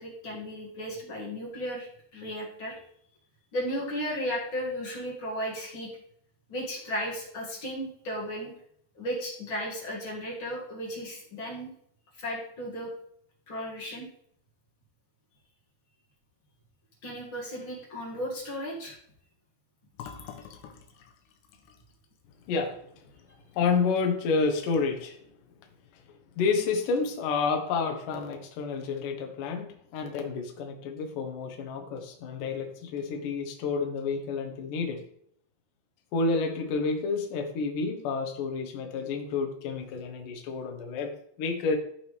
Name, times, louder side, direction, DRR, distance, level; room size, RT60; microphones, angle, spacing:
voice 1, 0.0-1.9 2.1-2.8 3.5-5.9 6.5-8.5 8.9-11.7 12.2-12.9 13.5-14.1 17.0-18.9 20.0-20.1, equal, 40° left, -3 dB, 2.1 m, -35 dB
Fill (with liquid), 19.9-23.6 23.9-24.1 24.4-25.0, left 7 dB, 80° left, 3.0 m, -48 dB
voice 2, 22.5-22.8 23.5-25.2 25.9-26.0 26.4-35.0 36.1-41.1 41.4-41.8, left 4 dB, 65° left, 3 dB, 2.4 m, -29 dB
14.5 x 5.1 x 3.4 m, 0.68 s
omnidirectional pair, 5.2 m